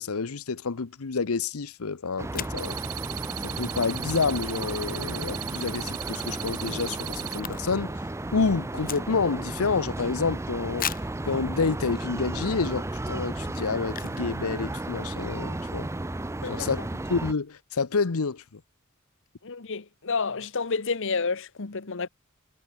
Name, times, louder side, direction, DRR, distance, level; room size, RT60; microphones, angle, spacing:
voice 1, 0.0-2.8 3.4-8.0 8.3-10.9 11.3-15.9 16.5-16.8 17.1-18.6, left 4 dB, 85° left, 0.8 m, -28 dB
sound 1, 2.2-17.3, right 2 dB, 15° right, 0.5 m, -34 dB
sound 2, 2.3-2.7 5.6-5.9 6.2-6.3 6.5-8.0 8.2-9.5 9.9-10.0 10.8-11.2 11.9-12.0 12.5-12.7 13.9-14.3 14.6-14.7 14.8-15.2, left 10 dB, 40° left, 2.1 m, -37 dB
sound 3, 2.6-7.4, right 15 dB, 85° right, 2.2 m, -37 dB
voice 2, 19.4-22.1, left 4 dB, 65° left, 1.1 m, -30 dB
head